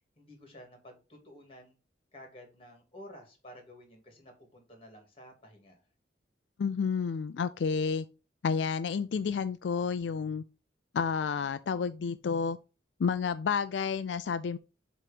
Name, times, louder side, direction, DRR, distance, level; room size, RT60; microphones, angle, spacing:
voice 1, 0.2-1.8 2.1-5.8, equal, 30° left, 2.3 m, -52 dB
voice 2, 6.6-8.1 8.4-10.4 10.9-12.6 13.0-14.6, left 5 dB, 85° left, 0.4 m, -30 dB
7.5 x 3.1 x 5.0 m
head